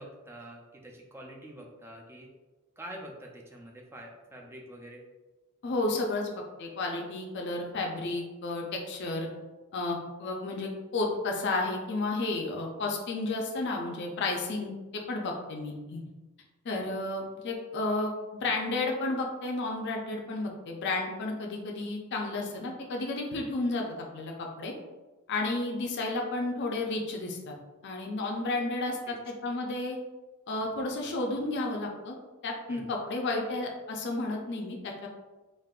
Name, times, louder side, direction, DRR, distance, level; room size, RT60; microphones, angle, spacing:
voice 1, 0.0-2.3 2.8-5.0 29.1-29.2 32.7-32.9, right 1 dB, 10° right, 0 dB, 0.4 m, -46 dB
voice 2, 5.6-9.3 9.7-16.0 16.6-24.7 25.3-27.5 27.8-30.0 30.5-32.1 32.4-34.9, left 2 dB, 50° left, 0 dB, 0.4 m, -32 dB
3.5 x 2.5 x 2.3 m, 1.2 s
head